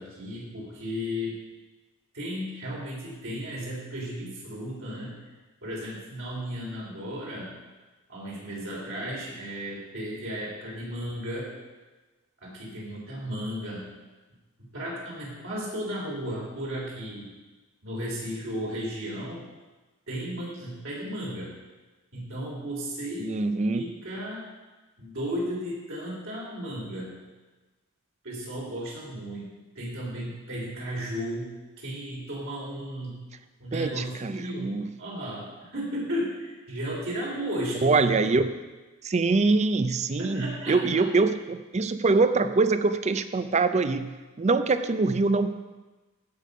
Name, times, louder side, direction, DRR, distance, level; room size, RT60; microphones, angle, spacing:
voice 1, 0.0-1.3 2.1-5.2 5.6-7.5 8.1-11.5 12.4-13.9 14.7-17.3 17.8-19.4 20.1-21.5 22.1-23.4 23.7-24.4 25.0-27.1 28.2-29.5 29.8-33.2 33.6-38.0 40.2-41.1, equal, 60° right, -5 dB, 3.4 m, -34 dB
voice 2, 23.2-23.8 33.7-34.9 37.8-38.5 39.0-45.5, right 3 dB, 30° right, 11 dB, 0.5 m, -24 dB
15.0 x 5.1 x 5.3 m, 1.2 s
head